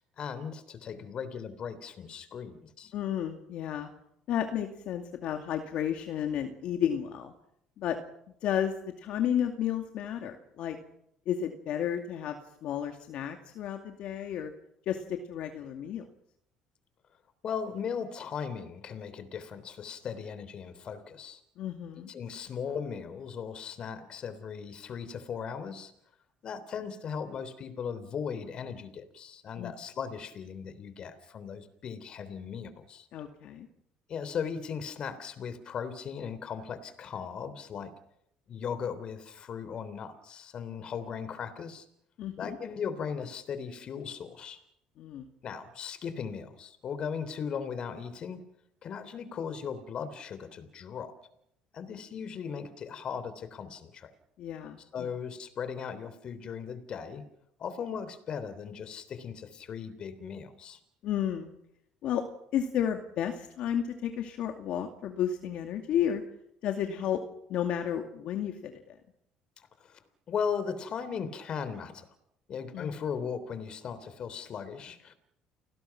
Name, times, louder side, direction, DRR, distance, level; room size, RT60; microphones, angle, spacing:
voice 1, 0.2-2.9 17.4-21.4 22.1-25.9 26.4-33.1 34.1-37.9 38.5-41.8 42.4-44.6 45.4-48.4 48.8-51.1 51.7-54.1 54.9-57.3 57.6-60.8 69.8-70.0 70.3-72.1 72.5-75.1, left 6 dB, 45° left, 13 dB, 3.4 m, -37 dB
voice 2, 2.9-3.9 4.3-7.3 7.8-8.0 8.4-10.8 11.3-14.5 14.9-16.1 21.6-22.1 29.6-29.7 33.1-33.7 42.2-42.6 45.0-45.3 54.4-55.1 61.0-61.5 62.0-62.2 62.5-66.2 66.6-67.2 67.5-68.9 72.7-73.0, left 9 dB, 65° left, 4 dB, 2.4 m, -32 dB
30.0 x 19.5 x 6.1 m, 0.77 s
cardioid pair, 105°, 2 cm